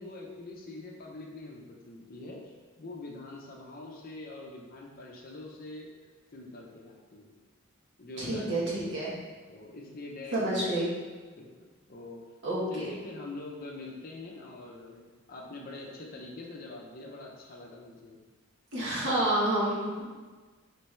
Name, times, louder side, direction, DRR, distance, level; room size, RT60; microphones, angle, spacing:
voice 1, 0.0-2.4 2.8-5.9 6.3-7.4 8.0-8.9 9.5-10.7 11.3-11.6 11.9-12.2 12.7-18.2, left 2 dB, 45° left, -1 dB, 0.6 m, -44 dB
voice 2, 8.2-9.1 10.3-10.9 12.4-12.9 18.7-20.0, right 1 dB, 60° right, -7 dB, 1.3 m, -29 dB
3.3 x 3.3 x 4.3 m, 1.4 s
head